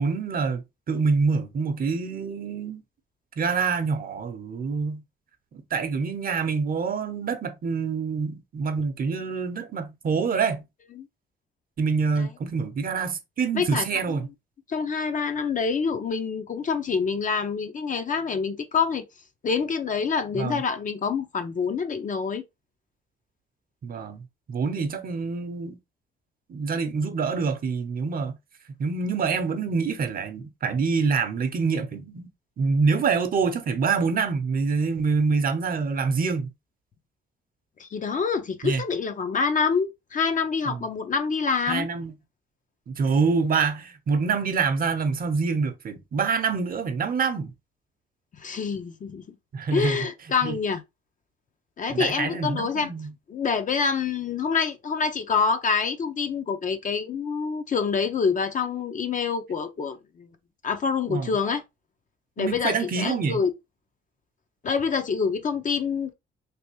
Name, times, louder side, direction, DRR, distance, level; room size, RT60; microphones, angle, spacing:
voice 1, 0.0-2.8 3.4-5.0 5.5-10.6 11.8-14.3 20.4-20.6 23.8-24.2 24.5-25.8 26.5-28.4 28.8-32.3 32.6-36.5 38.6-38.8 40.7-40.8 41.7-42.1 42.9-47.5 49.5-50.0 50.4-50.6 51.9-53.1 61.0-61.3 62.4-63.4, right 5 dB, 45° right, 0.7 m, -26 dB
voice 2, 13.5-14.2 14.7-19.0 19.4-22.4 37.8-41.9 48.4-49.4 49.7-50.8 51.8-52.9 53.3-60.3 60.6-61.6 62.4-63.5 64.6-66.1, left 5 dB, 40° left, 0.6 m, -26 dB
3.4 x 2.6 x 3.0 m
cardioid pair, 90°, 20 cm